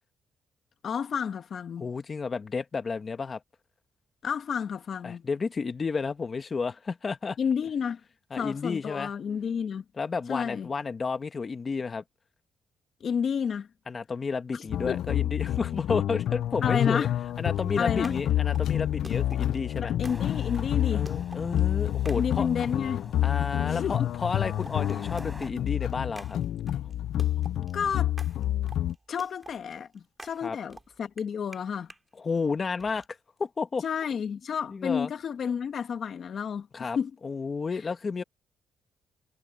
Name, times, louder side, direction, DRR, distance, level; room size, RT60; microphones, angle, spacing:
voice 1, 0.8-1.9 4.2-5.2 7.4-8.0 8.4-9.8 10.3-10.7 13.0-13.7 14.5-15.0 16.6-17.1 17.8-18.1 19.8-21.1 22.2-23.0 23.7-24.1 27.7-28.1 29.1-31.9 33.8-37.1 37.7-37.8, left 7 dB, 55° left, 1.4 m, -31 dB
voice 2, 1.8-3.4 5.0-7.4 8.3-9.1 10.0-12.0 13.9-17.1 17.4-19.9 20.9-22.5 23.2-26.4 30.4-30.6 32.2-33.0 33.4-33.8 34.7-35.1 36.7-37.0 37.2-38.2, left 4 dB, 35° left, 1.5 m, -31 dB
sound 1, 14.7-28.9, left 12 dB, 75° left, 0.4 m, -28 dB
sound 2, 17.6-23.0 23.6-32.0 32.8-33.1, right 2 dB, 15° right, 2.9 m, -50 dB
sound 3, 20.1-25.5, equal, ahead, 8.0 m, -48 dB
cardioid pair, 90°, 0 cm